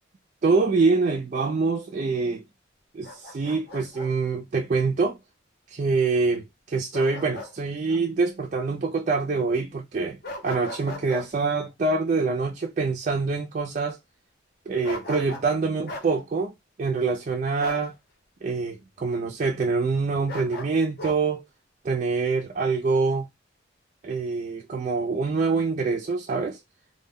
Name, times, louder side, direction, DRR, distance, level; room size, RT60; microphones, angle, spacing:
voice 1, 0.4-2.4 2.9-5.2 5.7-10.2 10.4-14.0 14.7-16.5 16.8-17.9 18.4-21.4 21.8-23.3 24.0-26.6, right 4 dB, 40° right, 0.3 m, -25 dB
Bark, 3.0-4.1 6.9-7.5 7.9-8.0 10.2-11.3 14.8-15.5 15.9-16.1 17.6-17.9 20.3-21.2, left 2 dB, 50° left, 0.6 m, -38 dB
2.1 x 2.1 x 3.4 m
head